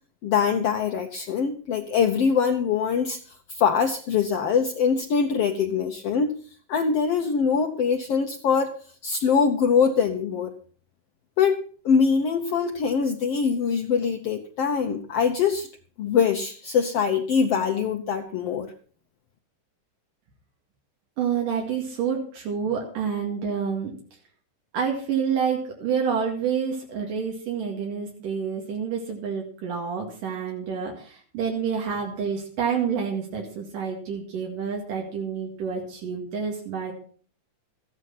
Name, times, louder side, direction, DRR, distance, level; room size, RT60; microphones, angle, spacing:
voice 1, 0.2-3.2 3.5-6.3 6.7-8.7 9.0-10.5 11.4-15.7 16.0-18.7, left 6 dB, 65° left, 3 dB, 1.6 m, -23 dB
voice 2, 21.2-24.0 24.7-36.9, right 6 dB, 80° right, 0 dB, 3.8 m, -28 dB
14.5 x 9.6 x 5.8 m, 0.44 s
omnidirectional pair, 3.7 m